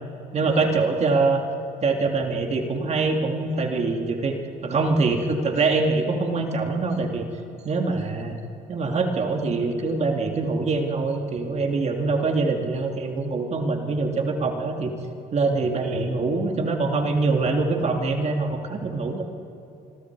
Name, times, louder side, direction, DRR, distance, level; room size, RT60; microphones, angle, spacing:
voice 1, 0.3-1.4 1.8-7.2 7.6-8.4 8.7-14.9 15.3-19.2, right 3 dB, 40° right, 3 dB, 2.3 m, -24 dB
26.5 x 23.0 x 4.7 m, 3.0 s
cardioid pair, 110°, 17 cm